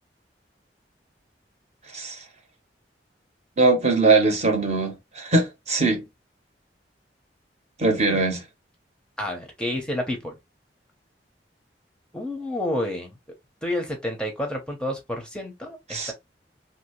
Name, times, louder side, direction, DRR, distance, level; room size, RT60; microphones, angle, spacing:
voice 1, 3.6-6.0 7.8-8.4 15.9-16.1, right 3 dB, 40° right, 0.8 m, -21 dB
voice 2, 9.2-10.3 12.1-13.2 13.6-16.1, left 1 dB, 5° left, 0.6 m, -29 dB
2.7 x 2.6 x 3.0 m
head